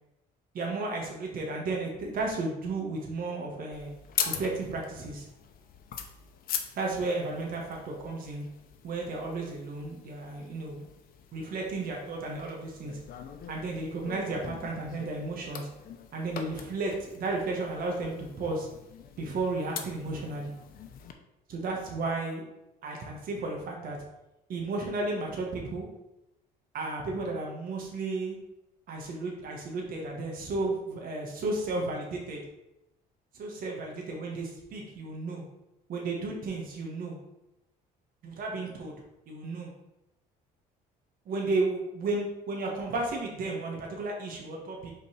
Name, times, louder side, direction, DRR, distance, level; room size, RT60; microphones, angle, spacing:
voice 1, 0.5-3.9 4.2-5.3 6.8-8.5 8.8-10.8 11.3-13.0 13.5-15.7 16.1-18.7 19.2-20.5 21.5-22.4 22.8-24.0 24.5-25.9 26.7-28.3 28.9-32.4 33.3-35.4 35.9-37.2 38.2-38.9 39.3-39.7 41.3-44.9, right 3 dB, 55° right, -1 dB, 1.3 m, -33 dB
sound 1, 3.7-21.1, left 8 dB, 60° left, 0.7 m, -42 dB
5.2 x 3.9 x 4.8 m, 0.91 s
cardioid pair, 110°, 17 cm